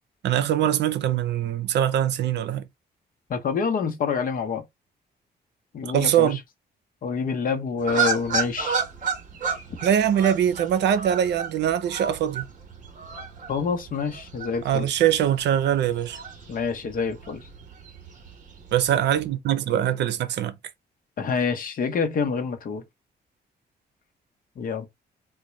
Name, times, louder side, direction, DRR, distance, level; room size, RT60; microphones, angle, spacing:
voice 1, 0.2-2.6 5.8-6.4 9.8-12.4 14.6-16.2 18.7-20.6, right 10 dB, 90° right, 0.6 m, -22 dB
voice 2, 3.3-4.6 5.7-6.4 7.0-8.8 13.5-14.9 16.5-17.5 21.2-22.8 24.6-24.9, left 5 dB, 55° left, 0.8 m, -27 dB
sound 1, 7.8-19.3, right 5 dB, 50° right, 1.1 m, -33 dB
3.9 x 2.2 x 3.1 m
cardioid pair, 130°, 17 cm